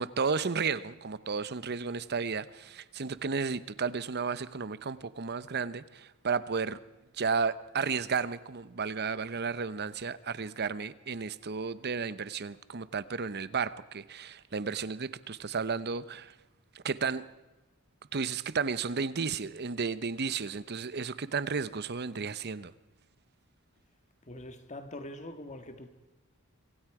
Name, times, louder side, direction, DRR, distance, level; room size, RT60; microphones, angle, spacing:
voice 1, 0.0-6.8 7.1-16.3 16.7-17.3 18.1-22.7, right 5 dB, 50° right, 0.8 m, -33 dB
voice 2, 24.2-25.9, left 1 dB, 35° left, 1.7 m, -43 dB
26.0 x 25.5 x 4.9 m
head